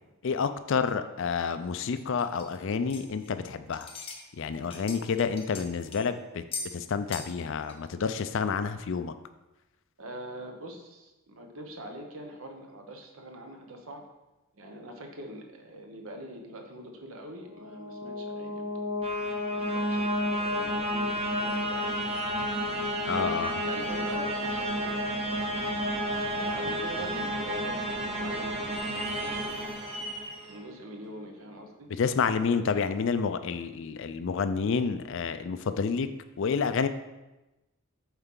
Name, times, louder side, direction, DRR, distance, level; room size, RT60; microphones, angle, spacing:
voice 1, 0.2-3.9 4.4-6.4 6.7-9.1 23.0-23.6 32.0-36.1 36.4-36.9, left 5 dB, 55° left, 11 dB, 0.4 m, -29 dB
sound 1, 2.0-3.4 3.7-4.2 4.5-6.1 6.5-6.7 7.1-7.4 7.6-7.7 8.3-8.4, left 4 dB, 25° left, 0.7 m, -40 dB
voice 2, 10.0-14.0 14.5-18.7 19.5-22.2 23.1-25.7 26.3-29.0 30.4-31.9, right 1 dB, 70° right, 3 dB, 1.0 m, -44 dB
sound 2, 17.6-30.6, equal, 25° right, 0.9 m, -31 dB
sound 3, 21.4-24.8 25.3-25.4 26.1-26.2 27.0-27.5 27.7-27.8 28.6-30.6 31.0-31.1 32.1-32.2, right 1 dB, 45° right, 2.4 m, -43 dB
8.0 x 4.4 x 3.8 m, 1.0 s
head